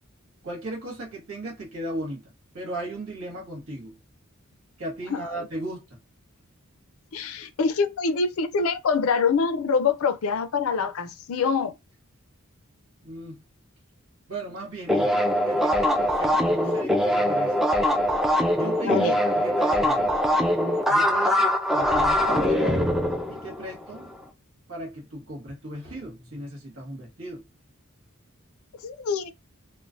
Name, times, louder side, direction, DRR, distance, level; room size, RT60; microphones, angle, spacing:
voice 1, 0.4-2.2 2.5-3.9 4.8-5.8 13.0-13.4 14.3-15.2 15.5-17.5 18.5-20.1 20.9-21.4 21.7-22.9 23.3-24.1 24.7-27.4, right 1 dB, 70° right, 1.5 m, -36 dB
voice 2, 5.1-5.5 7.1-11.7 18.8-19.2 28.8-29.3, left 5 dB, 70° left, 0.4 m, -25 dB
sound 1, 14.9-24.0, equal, ahead, 0.4 m, -22 dB
3.2 x 2.1 x 2.5 m
head